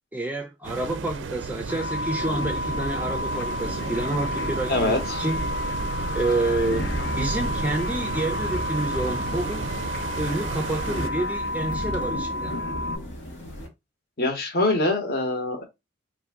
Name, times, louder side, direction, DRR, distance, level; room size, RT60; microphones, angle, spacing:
voice 1, 0.1-5.5 6.1-6.9 7.2-9.7 10.1-12.5, right 2 dB, 10° right, 0.4 m, -28 dB
sound 1, 0.6-11.1, right 4 dB, 80° right, 0.4 m, -33 dB
sound 2, 1.7-13.0, left 1 dB, 70° left, 0.3 m, -32 dB
sound 3, 2.2-13.7, left 1 dB, 90° left, 1.1 m, -35 dB
voice 2, 4.7-5.2 14.2-15.6, left 2 dB, 55° left, 0.8 m, -24 dB
2.7 x 2.5 x 3.4 m
head